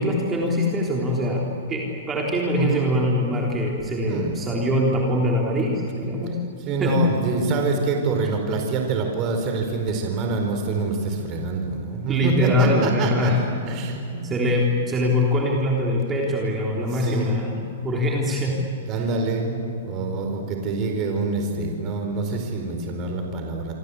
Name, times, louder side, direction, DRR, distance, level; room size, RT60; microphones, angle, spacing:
voice 1, 0.0-6.4 6.8-6.9 12.1-13.4 14.2-17.5 17.8-18.5 19.0-19.1, left 1 dB, 15° right, -2 dB, 3.5 m, -23 dB
voice 2, 2.5-2.9 4.1-4.3 6.6-13.3 13.6-14.3 16.8-17.3 18.9-23.7, right 3 dB, 30° right, 3 dB, 4.3 m, -26 dB
27.0 x 25.0 x 8.4 m, 2.7 s
hypercardioid pair, 145°, 0 cm